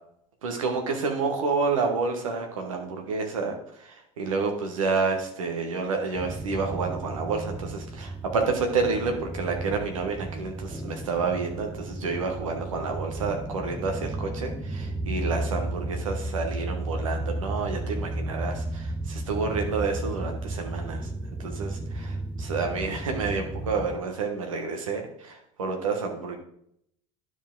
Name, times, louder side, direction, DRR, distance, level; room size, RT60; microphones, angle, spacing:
voice 1, 0.4-21.1 21.4-26.4, right 4 dB, 90° right, 3 dB, 1.1 m, -29 dB
sound 1, 6.2-24.0, right 1 dB, 10° right, 0.9 m, -33 dB
10.0 x 5.0 x 3.8 m, 0.70 s
hypercardioid pair, 75°, 17 cm